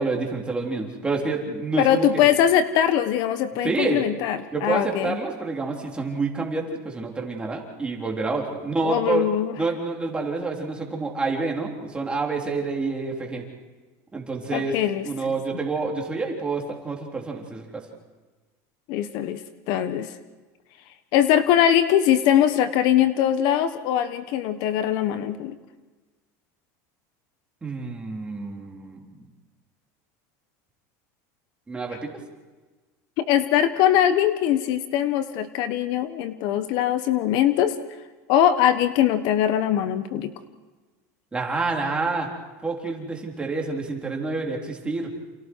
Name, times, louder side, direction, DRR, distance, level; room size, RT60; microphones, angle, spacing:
voice 1, 0.0-2.3 3.6-4.0 4.5-9.3 9.6-13.4 14.1-14.8 15.0-17.8 27.6-29.0 31.7-32.1 41.3-42.3 42.6-45.1, right 3 dB, 10° right, 0 dB, 3.7 m, -28 dB
voice 2, 1.8-5.2 8.8-9.5 14.5-15.1 18.9-19.4 19.7-20.1 21.1-25.5 33.2-37.7 38.3-40.3, left 10 dB, 55° left, 11 dB, 1.3 m, -21 dB
29.5 x 28.0 x 4.7 m, 1.3 s
supercardioid pair, 145°, 8 cm